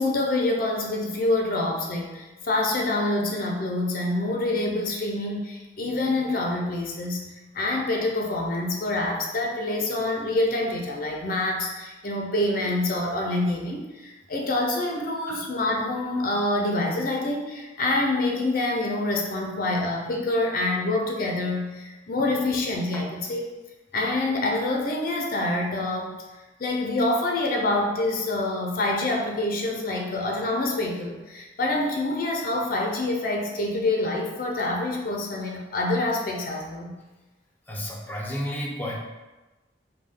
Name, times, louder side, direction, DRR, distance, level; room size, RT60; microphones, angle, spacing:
voice 1, 0.0-7.2 7.5-23.4 23.9-26.2 26.6-36.9, left 2 dB, 50° left, 1 dB, 0.6 m, -26 dB
voice 2, 37.7-39.0, equal, 10° left, -3 dB, 0.6 m, -32 dB
5.4 x 2.3 x 3.6 m, 1.1 s
head